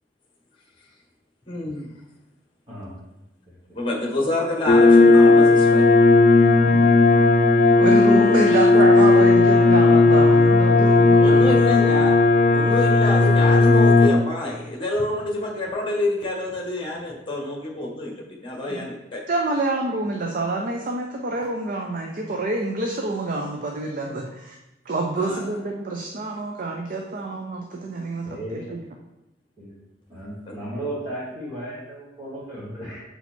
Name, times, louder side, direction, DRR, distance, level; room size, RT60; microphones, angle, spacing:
voice 1, 1.5-1.9 3.7-5.9 8.5-8.7 11.2-12.1 12.5-19.2 25.2-25.5 30.5-30.6, left 1 dB, 30° left, -1 dB, 1.5 m, -27 dB
voice 2, 3.5-3.8 28.3-28.7 29.6-29.7 30.1-33.0, right 1 dB, 25° right, -11 dB, 1.8 m, -35 dB
sound 1, 4.7-14.1, left 3 dB, 45° left, 0.6 m, -15 dB
voice 3, 7.8-11.6 11.8-11.9 18.7-18.8 19.3-24.6 24.9-28.8, right 2 dB, 45° right, 1 dB, 0.6 m, -27 dB
6.9 x 4.3 x 4.4 m, 0.92 s
head